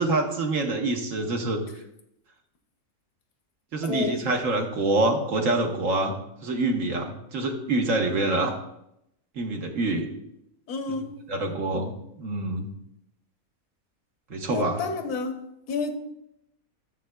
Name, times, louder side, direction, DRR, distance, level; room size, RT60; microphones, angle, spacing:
voice 1, 0.0-1.6 3.7-6.1 6.4-8.5 9.4-10.1 11.3-11.9 12.2-12.7 14.3-14.8, right 2 dB, 60° right, 1.4 m, -26 dB
voice 2, 3.8-4.2 10.7-11.1 14.5-16.0, left 4 dB, 85° left, 1.4 m, -30 dB
13.5 x 7.3 x 2.3 m
omnidirectional pair, 1.6 m